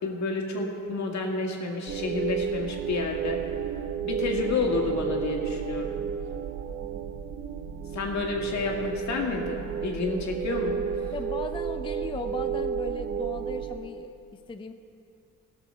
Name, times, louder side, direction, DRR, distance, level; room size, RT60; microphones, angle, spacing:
voice 1, 0.0-3.5 4.0-6.0 7.9-11.1, left 3 dB, 65° left, 1 dB, 1.9 m, -30 dB
sound 1, 1.9-13.8, right 7 dB, 40° right, 0.5 m, -32 dB
voice 2, 11.1-14.7, left 4 dB, 15° left, 8 dB, 0.5 m, -37 dB
16.0 x 6.1 x 6.7 m, 2.7 s
cardioid pair, 90°, 30 cm